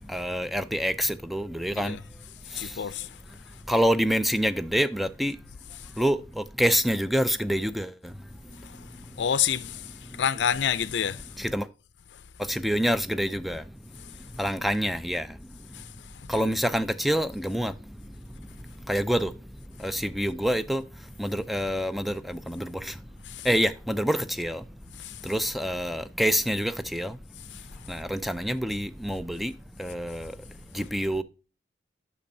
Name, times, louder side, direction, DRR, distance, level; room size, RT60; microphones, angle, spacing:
voice 1, 0.1-2.0 2.6-2.7 3.7-5.4 6.0-7.9 11.4-11.6 12.5-13.6 14.4-15.3 16.3-17.7 18.9-19.3 19.8-20.8 21.2-22.9 23.5-24.6 25.2-27.2 27.9-29.5 29.8-30.3 30.7-31.2, equal, ahead, 0.3 m, -26 dB
voice 2, 2.4-3.6 5.8-5.9 8.5-11.4 12.1-12.2 14.0-14.3 15.7-16.5 23.2-23.5 25.0-25.3 27.5-27.9, left 8 dB, 85° left, 0.4 m, -31 dB
8.5 x 6.0 x 2.6 m
head